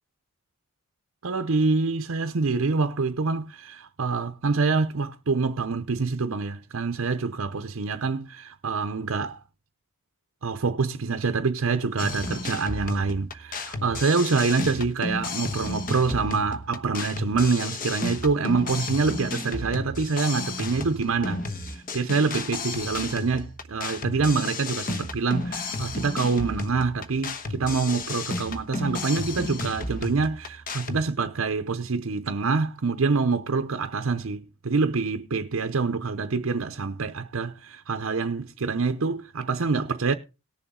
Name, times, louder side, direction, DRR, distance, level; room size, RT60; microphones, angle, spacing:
voice 1, 1.2-9.4 10.4-40.1, right 4 dB, 70° right, 0.7 m, -26 dB
sound 1, 12.0-31.0, left 3 dB, 40° left, 1.1 m, -33 dB
18.5 x 7.0 x 3.8 m
head